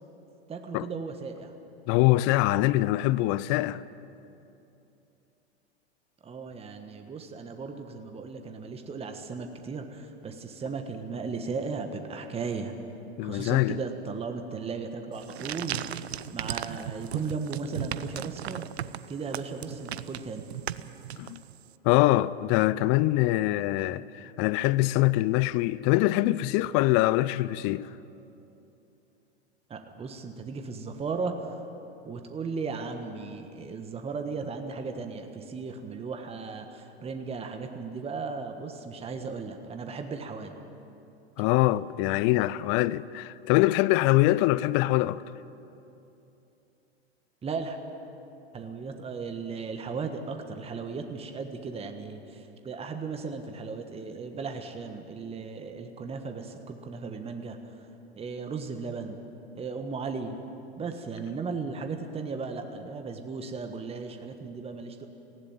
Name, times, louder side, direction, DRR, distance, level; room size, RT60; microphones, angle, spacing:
voice 1, 0.5-1.5 6.2-12.7 13.2-16.0 16.3-18.7 19.1-20.5 29.7-31.6 32.0-40.6 47.4-47.8 48.5-57.8 58.1-59.2 59.5-60.4 60.7-65.1, right 4 dB, 20° right, 1.4 m, -36 dB
voice 2, 1.9-3.8 13.2-13.8 21.2-21.4 21.8-27.9 41.4-45.2, left 17 dB, 40° left, 0.5 m, -24 dB
sound 1, 15.1-21.7, right 10 dB, 80° right, 0.6 m, -37 dB
18.0 x 16.0 x 9.1 m
hypercardioid pair, 95°, 32 cm